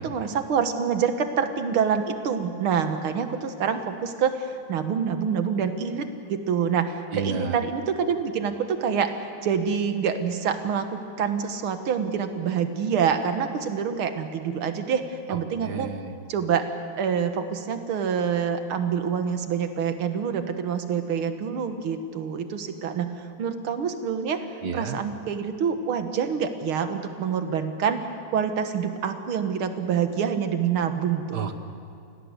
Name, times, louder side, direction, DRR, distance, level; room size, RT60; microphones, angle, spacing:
voice 1, 0.0-15.9 16.3-16.7 17.0-24.5 24.7-28.0 28.3-31.4, right 7 dB, 90° right, 8 dB, 2.3 m, -26 dB
voice 2, 7.1-7.6 15.3-16.2 24.6-25.0 31.3-31.7, right 6 dB, 55° right, 8 dB, 1.7 m, -31 dB
28.0 x 17.5 x 8.2 m, 2.5 s
omnidirectional pair, 2.3 m